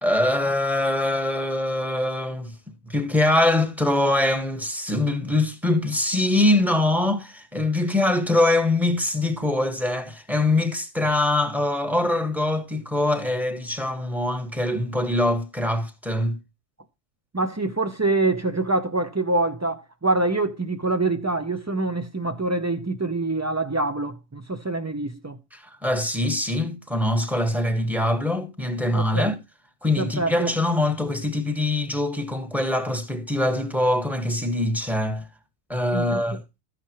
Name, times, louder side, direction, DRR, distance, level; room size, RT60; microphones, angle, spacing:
voice 1, 0.0-2.5 2.9-16.4 25.5-29.3 29.8-35.3 35.7-36.4, left 1 dB, ahead, 1.5 m, -23 dB
voice 2, 17.3-25.4 29.0-29.3 30.0-30.5 35.9-36.4, right 2 dB, 25° right, 0.3 m, -25 dB
13.5 x 9.9 x 3.1 m
omnidirectional pair, 1.4 m